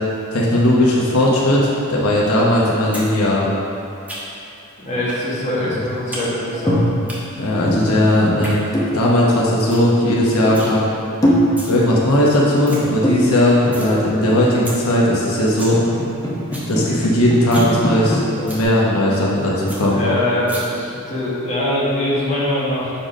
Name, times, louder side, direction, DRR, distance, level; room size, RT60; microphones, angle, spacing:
voice 1, 0.3-3.5 5.7-5.8 7.4-10.9 11.6-15.8 16.7-20.0, left 1 dB, 80° left, -5 dB, 1.0 m, -17 dB
sound 1, 2.9-3.1 3.4-4.5 5.1-5.2 5.6-6.3 6.5-7.2 8.2-8.5 9.0-9.1 9.4-9.5 9.7-9.9 10.2-10.7 11.3-11.7 12.2-12.3 12.4-12.8 13.2-13.9 14.3-14.4 14.7-14.8 15.2-15.3 15.4-15.8 16.1-16.2 16.4-16.7 17.0-17.1 17.4-17.7 18.0-18.1 18.5-18.6 19.0-19.1 19.4-19.5 19.7-19.8 20.5-20.6, right 1 dB, 5° right, 1.1 m, -33 dB
voice 2, 4.8-6.8 19.9-22.9, left 1 dB, 30° left, -7 dB, 1.5 m, -22 dB
sound 2, 6.5-7.1 7.4-8.3 8.7-9.5 10.1-10.2 10.4-10.9 11.2-12.0 12.9-13.8 14.2-14.8 15.5-18.6, equal, 15° left, 0.8 m, -22 dB
7.1 x 3.9 x 5.1 m, 2.6 s
head